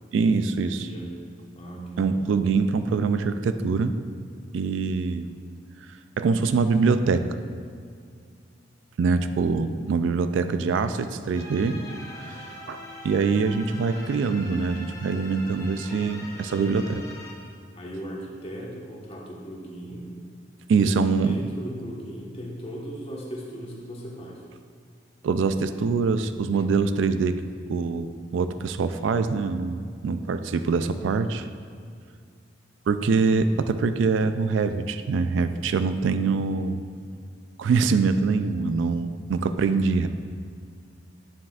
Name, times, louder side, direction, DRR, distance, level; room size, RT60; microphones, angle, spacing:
voice 1, 0.1-0.9 2.0-3.9 4.5-5.3 6.2-7.2 9.0-11.8 12.3-12.4 12.7-17.0 20.7-21.4 25.2-27.4 27.7-28.1 28.3-31.5 32.9-36.8 37.6-40.1, right 4 dB, 90° right, 10 dB, 0.3 m, -24 dB
voice 2, 1.5-2.3 17.8-20.1 20.8-24.4, equal, 30° left, -3 dB, 1.2 m, -37 dB
sound 1, 11.3-17.3, left 1 dB, 15° left, 0.8 m, -42 dB
9.0 x 7.4 x 2.4 m, 2.1 s
head